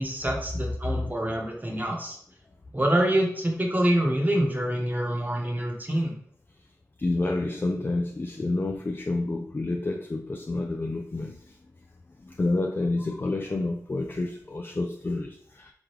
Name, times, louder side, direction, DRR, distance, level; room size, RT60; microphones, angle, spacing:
voice 1, 0.0-2.2 2.7-6.1, right 1 dB, 25° right, 1 dB, 1.0 m, -26 dB
voice 2, 7.0-11.6 12.2-15.7, left 2 dB, 35° left, 4 dB, 0.4 m, -29 dB
3.6 x 3.0 x 3.2 m, 0.63 s
cardioid pair, 40°, 7 cm